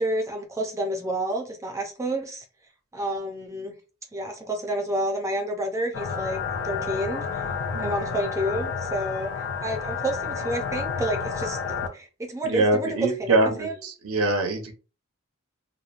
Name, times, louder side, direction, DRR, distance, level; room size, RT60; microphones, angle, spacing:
voice 1, 0.0-2.4 2.9-3.8 4.1-6.4 6.6-7.5 7.8-11.6 11.9-13.7, right 1 dB, 15° right, 0.5 m, -29 dB
sound 1, 5.9-11.9, left 5 dB, 55° left, 0.4 m, -30 dB
voice 2, 7.7-8.0 12.4-14.7, right 2 dB, 85° right, 0.7 m, -24 dB
2.9 x 2.1 x 2.4 m
head